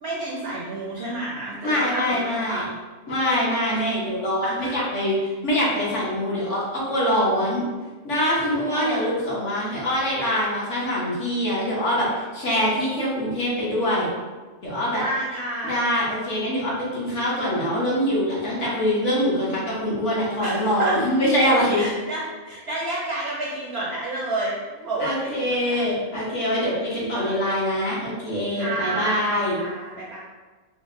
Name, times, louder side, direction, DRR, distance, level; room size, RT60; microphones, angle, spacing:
voice 1, 0.0-2.7 3.7-3.9 4.4-4.7 8.4-9.1 14.9-15.8 20.4-21.0 21.7-26.2 26.8-26.9 27.1-27.3 28.5-29.3 29.5-30.2, right 2 dB, 65° right, -5 dB, 0.6 m, -30 dB
voice 2, 1.6-2.7 3.1-7.6 8.0-12.1 12.3-14.1 14.6-15.0 15.6-21.9 25.0-29.6, equal, 60° left, -6 dB, 1.2 m, -24 dB
4.4 x 2.1 x 2.5 m, 1.3 s
omnidirectional pair, 1.5 m